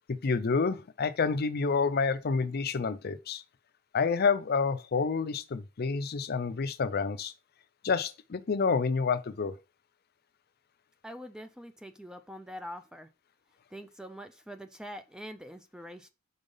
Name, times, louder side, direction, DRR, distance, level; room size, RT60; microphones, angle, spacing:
voice 1, 0.2-3.4 3.9-7.3 7.8-9.6, left 5 dB, 50° left, 0.5 m, -28 dB
voice 2, 11.0-13.1 13.7-16.1, equal, 5° right, 0.4 m, -44 dB
5.4 x 4.0 x 5.4 m
head